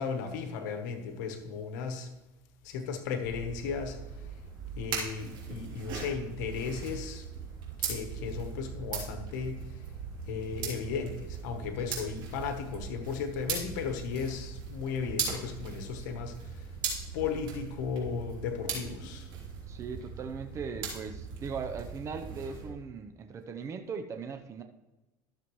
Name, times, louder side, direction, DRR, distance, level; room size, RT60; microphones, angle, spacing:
voice 1, 0.0-2.1 2.6-4.0 4.7-7.3 7.8-9.6 10.3-16.6 17.1-19.3, left 6 dB, 85° left, 6 dB, 1.2 m, -35 dB
sound 1, 3.2-22.7, right 6 dB, 50° right, 3.1 m, -39 dB
voice 2, 19.7-24.6, right 5 dB, 30° right, 6 dB, 0.7 m, -39 dB
13.0 x 7.0 x 3.2 m, 1.1 s
supercardioid pair, 115°, 10 cm